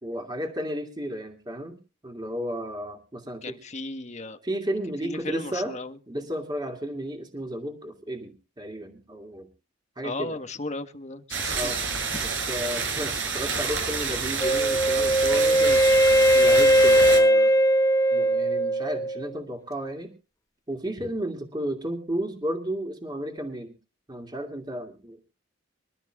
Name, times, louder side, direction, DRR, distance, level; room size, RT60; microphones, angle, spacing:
voice 1, 0.0-3.6 4.4-5.8 6.1-9.5 10.0-10.4 11.5-11.8 12.2-15.8 16.3-17.5 18.1-20.1 20.7-23.7 24.1-25.2, right 1 dB, 25° right, 2 dB, 2.6 m, -33 dB
voice 2, 3.4-4.4 5.0-5.9 10.0-11.7, left 2 dB, 35° left, 8 dB, 1.3 m, -35 dB
sound 1, 11.3-17.2, right 5 dB, 75° right, 6.5 m, -29 dB
Wind instrument woodwind instrument, 14.4-19.3, right 1 dB, 20° left, 1.1 m, -19 dB
26.0 x 13.0 x 2.4 m, 0.33 s
head